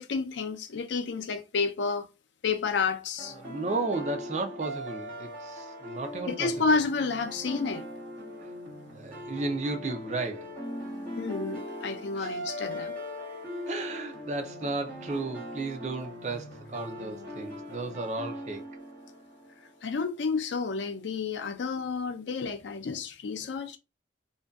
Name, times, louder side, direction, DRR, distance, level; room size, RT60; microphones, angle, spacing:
voice 1, 0.0-2.1 2.4-3.3 6.3-7.9 11.2-12.9 19.8-23.8, left 4 dB, 75° left, 0.4 m, -30 dB
sound 1, 3.2-20.1, equal, 10° right, 1.1 m, -40 dB
voice 2, 3.4-6.5 8.9-10.5 12.2-12.4 13.7-18.6, right 3 dB, 40° right, 0.4 m, -34 dB
2.5 x 2.2 x 2.3 m
head